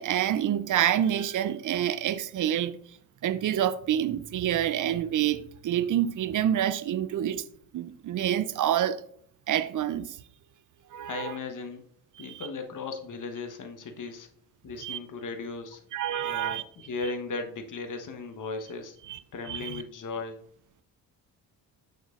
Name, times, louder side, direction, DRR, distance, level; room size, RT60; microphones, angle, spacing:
voice 1, 0.0-2.8 3.2-7.4 7.7-9.0 9.5-10.2 10.9-11.3 12.3-12.5 14.8-15.0 15.9-16.6 19.1-19.2 19.5-19.8, right 10 dB, 40° right, 0.5 m, -27 dB
voice 2, 11.1-11.8 12.2-14.3 14.6-15.8 16.2-19.0 19.3-20.4, left 4 dB, 40° left, 1.2 m, -37 dB
6.6 x 6.3 x 2.5 m
hypercardioid pair, 50°, 47 cm